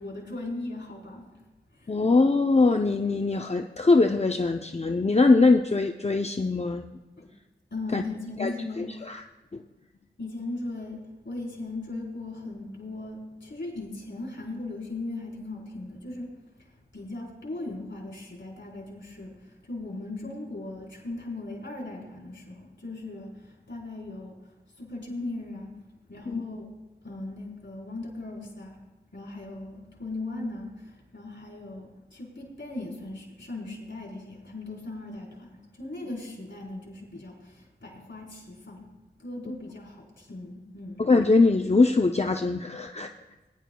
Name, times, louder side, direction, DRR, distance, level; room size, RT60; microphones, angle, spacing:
voice 1, 0.0-1.4 1.7-1.9 7.2-7.3 7.7-8.9 10.2-16.3 16.6-16.7 16.9-24.4 24.8-25.8 26.1-26.7 27.0-28.8 29.1-38.9 39.2-41.0, left 2 dB, 85° left, -3 dB, 3.8 m, -38 dB
voice 2, 1.9-6.9 7.9-8.0 8.4-8.5 8.8-9.2 9.5-9.6 26.3-26.4 41.0-43.1, left 3 dB, 35° left, 4 dB, 0.6 m, -22 dB
20.0 x 11.0 x 2.3 m, 1.1 s
wide cardioid pair, 50°, 19 cm